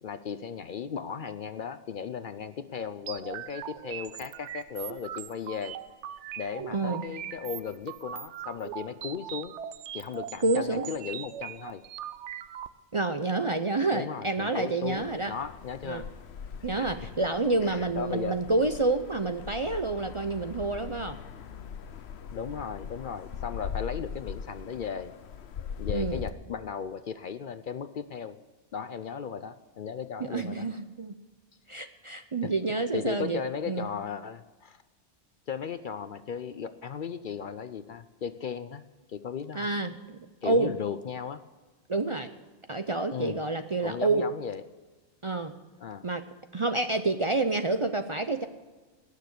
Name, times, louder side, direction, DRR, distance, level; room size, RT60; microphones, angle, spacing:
voice 1, 0.0-5.8 6.4-9.6 9.9-11.8 13.9-16.1 16.6-16.9 17.6-18.4 22.3-25.2 25.8-28.4 28.7-30.7 32.4-34.8 35.5-38.8 39.1-39.7 40.4-41.4 43.1-43.4 43.8-44.6 45.8-46.0, left 7 dB, 55° left, 12 dB, 0.7 m, -36 dB
sound 1, 3.1-12.7, right 10 dB, 80° right, 0.9 m, -40 dB
voice 2, 6.7-7.0 10.4-10.9 12.9-15.3 15.8-16.0 16.6-21.2 25.9-26.2 30.2-31.2 31.7-33.9 39.5-40.8 41.9-42.3 42.7-44.3 45.2-45.5 46.0-46.2 46.5-48.5, right 3 dB, 35° right, 8 dB, 0.5 m, -28 dB
sound 2, 14.9-26.3, left 7 dB, 70° left, 1.0 m, -41 dB
18.0 x 6.7 x 8.3 m, 1.3 s
omnidirectional pair, 1.2 m